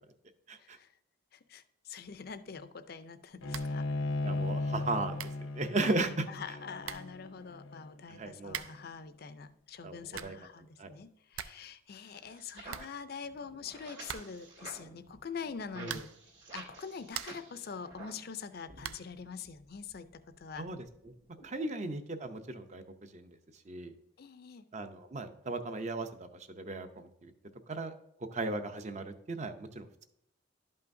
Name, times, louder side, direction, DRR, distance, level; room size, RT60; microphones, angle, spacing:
voice 1, 0.6-0.9 1.3-4.1 5.8-5.9 6.3-16.1 16.5-20.7 21.6-21.7 24.2-24.6 28.4-28.5, left 6 dB, 50° left, 12 dB, 0.4 m, -45 dB
Bowed string instrument, 3.4-8.7, left 2 dB, 85° left, 0.7 m, -36 dB
sound 1, 3.5-3.9 4.1-4.2 4.8-4.9 5.2-5.5 6.4-6.5 6.8-7.2 8.5-8.9 9.9-10.5 10.9-11.0 11.1-11.7 12.0-12.1 12.3-12.4 12.7-13.5 14.0-14.6 15.8-16.3 16.8-17.6 18.8-19.2, right 9 dB, 85° right, 0.4 m, -43 dB
voice 2, 4.2-6.3 8.1-8.6 9.8-10.0 10.2-10.3 10.8-10.9 15.8-16.0 20.6-21.1 21.4-23.4 23.7-23.9 24.7-27.3 27.7-27.9 28.3-30.1, right 2 dB, 35° right, 9 dB, 0.6 m, -36 dB
sound 2, 12.1-18.3 18.6-21.5, right 3 dB, 60° right, 1.9 m, -52 dB
11.5 x 5.6 x 2.6 m, 0.77 s
head